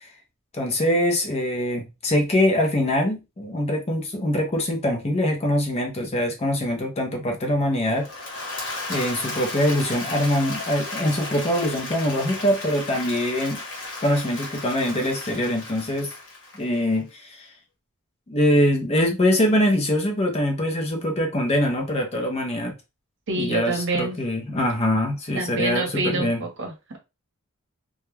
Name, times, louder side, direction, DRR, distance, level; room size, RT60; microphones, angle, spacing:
voice 1, 0.5-8.1 8.9-13.6 14.0-16.1 16.5-17.5 18.3-22.7 23.4-26.4, left 1 dB, 30° left, 0.6 m, -23 dB
Applause / Crowd, 7.9-17.0, left 2 dB, 60° left, 1.0 m, -34 dB
voice 2, 23.3-24.2 25.4-27.0, right 3 dB, 55° right, 0.9 m, -27 dB
2.3 x 2.1 x 3.1 m
head